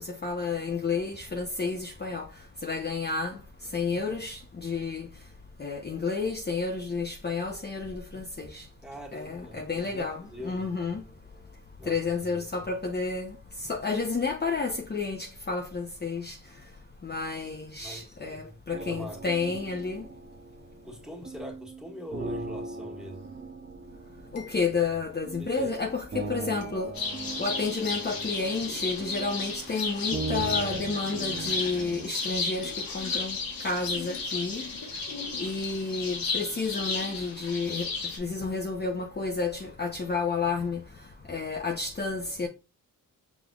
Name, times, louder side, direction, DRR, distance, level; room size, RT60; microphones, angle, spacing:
voice 1, 0.0-2.3 2.6-3.4 3.7-5.1 5.6-8.6 9.1-11.0 11.8-13.4 13.7-16.4 17.0-20.0 24.3-27.0 27.4-33.4 33.6-34.7 35.4-37.9 38.2-40.8 41.3-42.5, left 4 dB, 30° left, 0.8 m, -31 dB
voice 2, 8.8-11.0 11.8-12.7 17.8-19.6 20.8-23.4 25.4-25.7 26.1-26.3, left 1 dB, ahead, 1.6 m, -43 dB
sound 1, 18.7-32.1, right 3 dB, 30° right, 0.7 m, -39 dB
sound 2, 23.2-23.3 24.4-24.9 26.6-26.9 28.2-28.5 29.9-30.2 31.2-31.7 32.6-33.0 34.1-34.7 35.6-36.0, left 6 dB, 60° left, 1.0 m, -48 dB
sound 3, 26.9-38.2, left 4 dB, 75° left, 1.3 m, -33 dB
6.1 x 3.5 x 2.4 m
cardioid pair, 60°, 35 cm